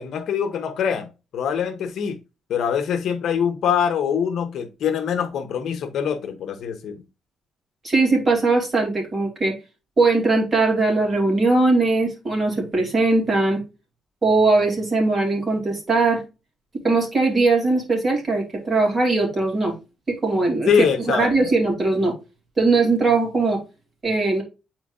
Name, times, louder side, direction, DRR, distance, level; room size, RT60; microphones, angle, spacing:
voice 1, 0.0-2.2 2.5-7.0 20.7-21.5, left 7 dB, 65° left, 0.9 m, -24 dB
voice 2, 7.8-9.5 10.0-13.6 14.2-16.2 16.8-19.7 20.1-22.1 22.6-23.6 24.0-24.4, right 3 dB, 20° right, 2.6 m, -20 dB
9.1 x 4.5 x 2.4 m
cardioid pair, 160°, 0 cm